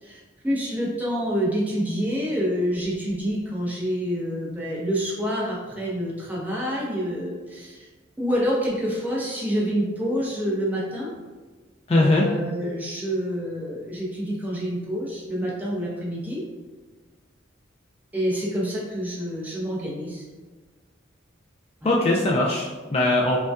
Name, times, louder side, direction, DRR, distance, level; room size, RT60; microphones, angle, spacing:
voice 1, 0.0-7.9 8.2-11.1 12.0-16.4 18.1-20.2 21.8-21.9, equal, 10° right, -5 dB, 0.8 m, -27 dB
voice 2, 11.9-12.3 21.8-23.4, left 2 dB, 30° left, -3 dB, 0.3 m, -20 dB
5.1 x 2.3 x 2.3 m, 1.4 s
head